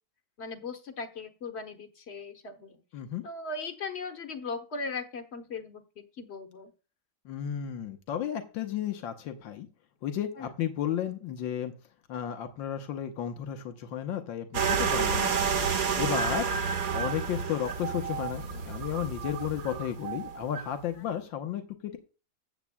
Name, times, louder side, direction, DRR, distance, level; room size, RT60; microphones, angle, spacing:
voice 1, 0.4-2.8 3.2-6.7 10.4-10.5, left 4 dB, 40° left, 7 dB, 1.1 m, -38 dB
voice 2, 7.2-9.7 10.0-11.7 12.1-15.4 15.9-16.5 16.9-22.0, left 9 dB, 85° left, 6 dB, 1.7 m, -33 dB
sound 1, 14.5-20.7, right 6 dB, 50° right, 1.5 m, -30 dB
14.5 x 8.1 x 2.2 m, 0.34 s
omnidirectional pair, 2.0 m